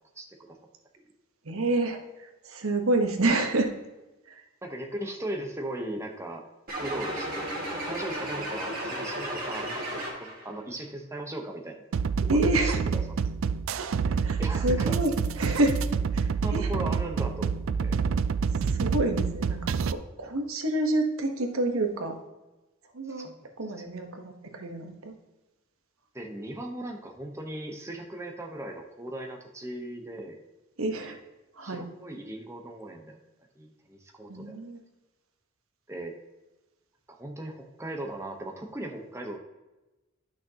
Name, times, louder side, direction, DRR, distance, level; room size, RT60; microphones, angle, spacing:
voice 1, 0.2-0.6 4.6-6.4 6.8-11.8 12.3-13.0 14.4-15.0 16.4-18.0 23.1-23.4 26.1-30.4 31.6-33.2 33.6-34.6 35.9-36.1 37.1-39.4, right 1 dB, 15° right, 2 dB, 0.9 m, -38 dB
voice 2, 1.4-3.7 4.3-4.4 12.3-12.8 13.8-15.8 16.1-16.7 18.7-22.2 22.9-23.3 23.6-25.1 30.8-31.2 31.5-31.8 34.3-34.8, right 2 dB, 90° right, 5 dB, 1.2 m, -28 dB
sound 1, 6.7-10.5, right 1 dB, 45° right, 2.4 m, -34 dB
sound 2, 11.9-19.9, right 5 dB, 70° right, 0.3 m, -27 dB
11.0 x 6.1 x 2.9 m, 1.0 s
head